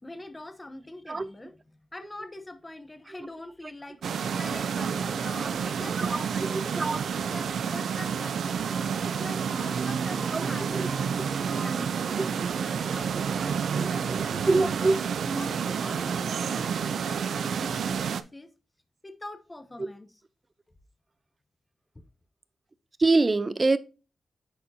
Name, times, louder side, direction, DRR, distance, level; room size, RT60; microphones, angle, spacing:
voice 1, 0.0-1.6 1.9-6.9 7.3-8.4 9.0-14.9 15.4-18.5 19.0-20.1, left 1 dB, 20° left, 0.9 m, -44 dB
sound 1, 4.0-18.2, right 7 dB, 85° right, 0.5 m, -29 dB
Glass, 5.5-12.2, equal, 80° left, 3.1 m, -50 dB
voice 2, 6.5-7.0 10.3-10.9 11.7-11.9 12.2-12.3 13.1-13.5 14.4-15.0 15.3-15.5 17.6-17.7 23.0-23.8, right 3 dB, 35° right, 0.6 m, -26 dB
10.0 x 4.3 x 2.7 m
cardioid pair, 65°, 0 cm